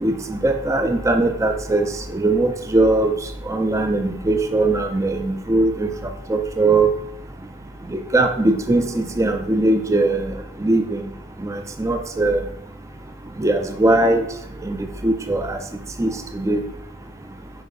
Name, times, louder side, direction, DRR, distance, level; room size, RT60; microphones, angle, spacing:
voice 1, 0.0-3.1 3.5-5.9 6.3-6.9 7.9-10.3 10.6-11.0 11.4-12.4 13.4-14.3 14.6-14.8 15.0-15.6 16.0-16.6, right 2 dB, 15° right, 6 dB, 0.4 m, -20 dB
5.0 x 4.1 x 4.8 m, 0.74 s
head